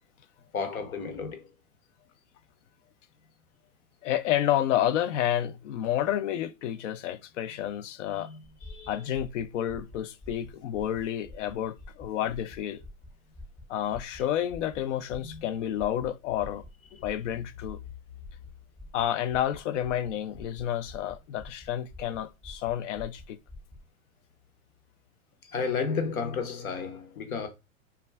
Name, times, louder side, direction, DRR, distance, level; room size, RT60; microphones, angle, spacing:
voice 1, 0.5-1.5 8.0-9.2 14.2-14.3 15.2-15.5 16.9-17.3 25.4-27.5, left 5 dB, 80° left, 0.9 m, -34 dB
voice 2, 4.0-8.3 8.9-12.8 13.7-16.6 17.0-17.8 18.9-23.4, left 11 dB, 60° left, 0.5 m, -30 dB
sound 1, 8.4-23.9, left 1 dB, 15° left, 0.6 m, -48 dB
2.3 x 2.2 x 3.3 m
hypercardioid pair, 105°, 42 cm